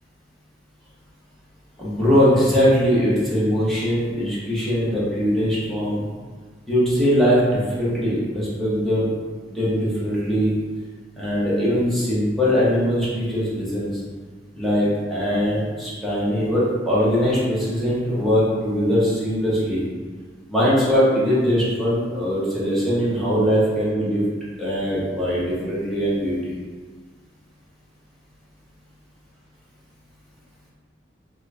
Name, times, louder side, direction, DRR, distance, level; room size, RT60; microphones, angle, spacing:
voice 1, 1.8-6.1 6.7-9.1 9.5-10.5 11.2-14.0 14.5-19.8 20.5-24.2 24.6-26.5, equal, ahead, -10 dB, 0.9 m, -21 dB
2.9 x 2.4 x 3.3 m, 1.5 s
head